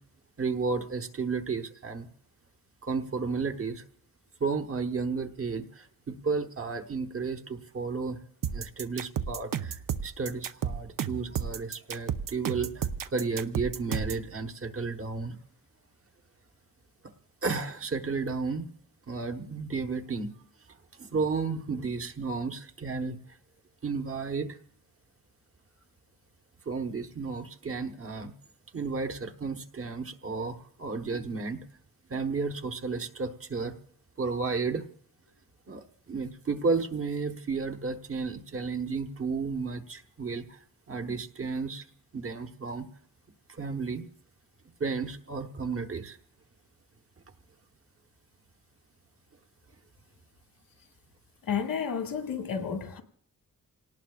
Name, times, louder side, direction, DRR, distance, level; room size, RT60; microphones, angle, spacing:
voice 1, 0.4-2.1 2.8-3.8 4.4-8.2 8.5-15.4 17.4-18.7 19.1-20.3 21.0-23.2 23.8-24.6 26.6-28.3 28.7-31.6 32.1-33.8 34.2-34.9 35.7-41.9 42.1-42.9 43.5-44.1 44.8-46.2, right 4 dB, 40° right, 1.2 m, -33 dB
sound 1, 8.4-14.2, right 8 dB, 70° right, 0.8 m, -32 dB
voice 2, 51.5-53.0, left 7 dB, 85° left, 1.9 m, -31 dB
28.5 x 18.5 x 2.5 m
wide cardioid pair, 165°, 34 cm